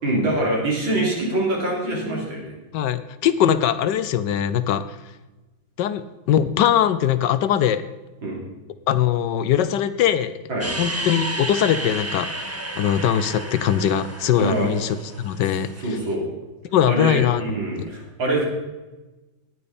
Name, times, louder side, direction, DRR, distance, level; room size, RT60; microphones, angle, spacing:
voice 1, 0.0-2.5 8.2-8.4 10.5-10.7 14.4-14.7 15.8-16.3 16.9-18.4, right 1 dB, 85° right, -3 dB, 4.0 m, -24 dB
voice 2, 2.7-5.0 5.8-7.8 8.9-10.4 10.8-12.3 12.7-16.0 16.7-17.4, left 9 dB, 70° left, 13 dB, 1.2 m, -21 dB
sound 1, 10.6-16.0, right 1 dB, 15° right, 0.5 m, -32 dB
18.0 x 8.7 x 4.2 m, 1.1 s
omnidirectional pair, 2.1 m